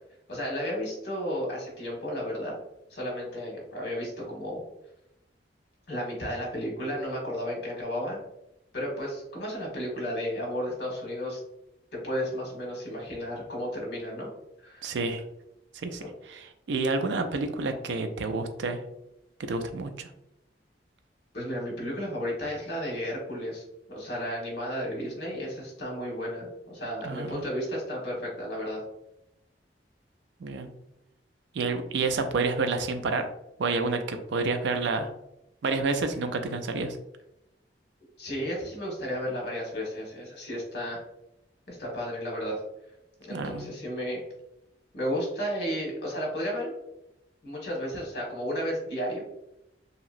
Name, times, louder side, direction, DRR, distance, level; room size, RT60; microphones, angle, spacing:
voice 1, 0.3-2.5 2.9-4.6 5.9-8.2 8.7-11.4 11.9-14.3 14.6-14.9 16.0-16.1 21.3-28.8 38.2-41.0 41.7-42.6 43.2-44.2 44.9-46.7 47.4-49.3, equal, 65° left, -2 dB, 1.2 m, -33 dB
voice 2, 14.8-15.2 15.7-18.8 19.4-20.1 27.0-27.5 30.4-30.7 31.5-33.3 33.6-35.1 35.6-37.0 43.3-43.7, right 3 dB, 80° right, 7 dB, 0.4 m, -29 dB
2.9 x 2.8 x 2.4 m, 0.86 s
head